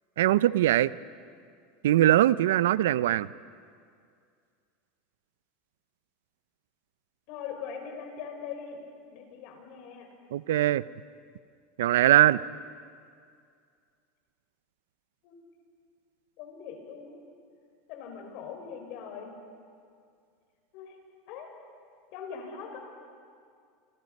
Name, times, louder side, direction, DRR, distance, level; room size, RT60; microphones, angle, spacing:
voice 1, 0.2-0.9 1.8-3.3 10.3-10.8 11.8-12.4, right 13 dB, 90° right, 18 dB, 0.5 m, -21 dB
voice 2, 7.3-8.8 9.1-10.1 15.2-15.4 16.4-17.2 17.9-19.3 20.7-21.0 21.3-21.5 22.1-22.8, left 7 dB, 60° left, 3 dB, 5.4 m, -41 dB
27.5 x 25.0 x 5.4 m, 2.2 s
supercardioid pair, 130°, 0 cm